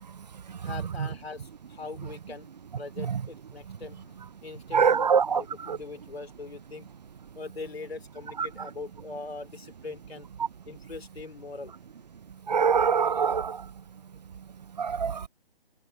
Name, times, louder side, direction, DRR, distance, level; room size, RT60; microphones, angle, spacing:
voice 1, 0.6-2.5 2.8-6.9 7.3-10.3 10.7-11.7, left 3 dB, 80° left, 3.0 m, -41 dB
voice 2, 4.7-5.4 8.4-8.5 12.5-13.6 14.8-15.2, right 6 dB, 45° right, 0.5 m, -23 dB
figure-of-eight pair, 150°, 30 cm